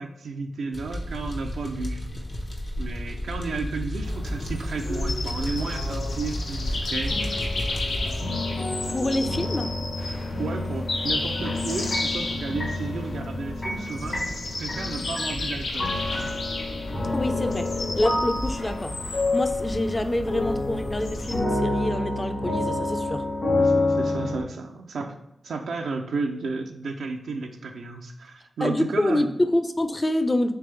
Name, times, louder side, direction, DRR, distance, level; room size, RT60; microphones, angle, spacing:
voice 1, 0.0-2.0 2.8-7.2 10.4-14.2 14.6-15.9 23.6-25.2 25.4-29.3, right 4 dB, 85° right, 4 dB, 0.4 m, -33 dB
sound 1, 0.7-8.2, left 1 dB, 65° left, 0.9 m, -32 dB
sound 2, 4.0-21.4, left 2 dB, 80° left, 0.6 m, -32 dB
sound 3, 6.6-24.4, left 2 dB, 50° left, 1.4 m, -29 dB
voice 2, 8.9-9.7 17.1-17.7 18.0-18.9 19.3-23.2 28.6-30.5, left 1 dB, 30° left, 8 dB, 0.5 m, -26 dB
3.4 x 3.3 x 3.2 m, 0.86 s
cardioid pair, 40°, 0 cm